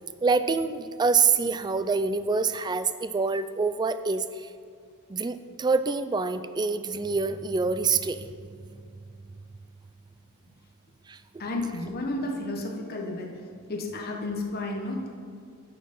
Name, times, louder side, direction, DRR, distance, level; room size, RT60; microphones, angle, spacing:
voice 1, 0.2-4.5 5.1-8.8 11.1-11.2, right 4 dB, 20° right, 12 dB, 0.3 m, -26 dB
voice 2, 11.4-13.3 13.7-15.1, left 2 dB, 45° left, 0 dB, 1.1 m, -32 dB
10.0 x 6.5 x 5.4 m, 2.4 s
head